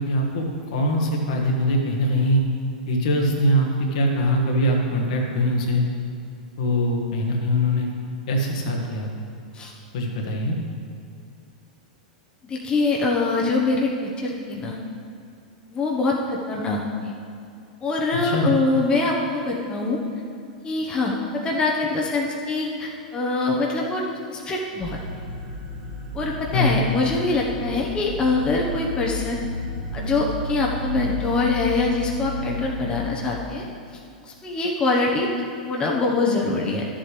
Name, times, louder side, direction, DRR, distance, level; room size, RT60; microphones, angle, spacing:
voice 1, 0.0-2.4 2.9-5.8 6.6-7.9 8.3-9.1 9.9-10.6 18.2-18.5 26.5-26.8, equal, 60° left, 0 dB, 1.5 m, -22 dB
voice 2, 12.4-14.8 15.7-17.1 17.8-20.0 20.6-24.0 24.3-25.0 26.1-29.4 29.9-33.7 34.2-35.3 35.7-36.8, left 3 dB, 20° left, -2 dB, 1.1 m, -24 dB
sound 1, 24.8-33.3, left 1 dB, 40° right, 1.9 m, -32 dB
12.5 x 7.5 x 3.4 m, 2.5 s
figure-of-eight pair, 95°, 4 cm